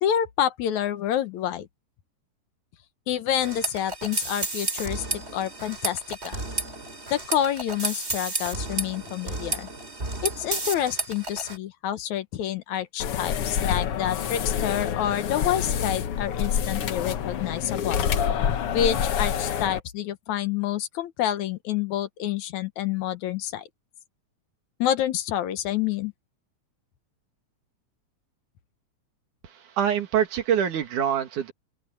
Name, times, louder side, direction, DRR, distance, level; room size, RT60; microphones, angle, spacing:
voice 1, 0.0-1.7 3.1-6.4 7.1-9.7 10.2-18.0 18.7-23.7 24.8-26.1, left 10 dB, 75° left, 2.4 m, -28 dB
sound 1, 3.4-11.6, right 2 dB, 20° right, 3.7 m, -32 dB
sound 2, 13.0-19.8, left 8 dB, 60° left, 1.8 m, -27 dB
voice 2, 29.4-31.5, right 9 dB, 85° right, 3.3 m, -25 dB
open air
omnidirectional pair, 3.5 m